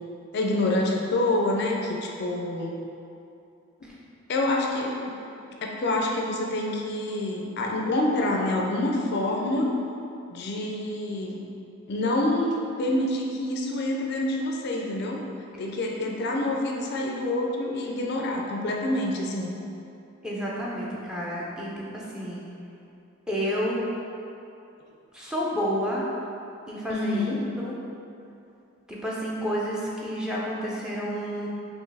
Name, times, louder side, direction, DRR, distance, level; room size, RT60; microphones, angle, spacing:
voice 1, 0.3-2.7 4.3-5.1 5.6-9.7 10.3-11.4 11.9-15.2 15.6-19.5 26.9-27.5, left 1 dB, 50° left, 0 dB, 0.4 m, -27 dB
voice 2, 20.2-22.4 23.3-23.8 25.1-26.1 26.7-27.7 28.9-31.5, equal, 5° right, -6 dB, 0.5 m, -30 dB
4.4 x 3.0 x 3.3 m, 2.7 s
head